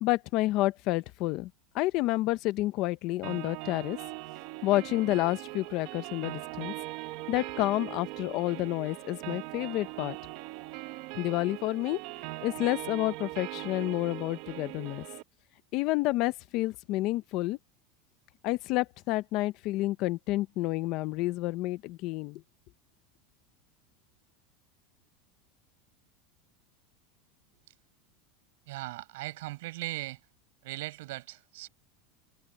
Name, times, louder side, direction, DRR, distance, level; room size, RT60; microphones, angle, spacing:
voice 1, 0.0-4.0 4.6-6.7 7.3-10.2 11.1-12.0 12.4-15.0 15.7-17.6 18.4-22.4, left 18 dB, 40° left, 0.7 m, -29 dB
sound 1, 3.2-15.2, right 19 dB, 50° right, 0.9 m, -40 dB
voice 2, 28.7-30.2 30.6-31.7, right 19 dB, 70° right, 5.8 m, -38 dB
supercardioid pair, 170°, 0 cm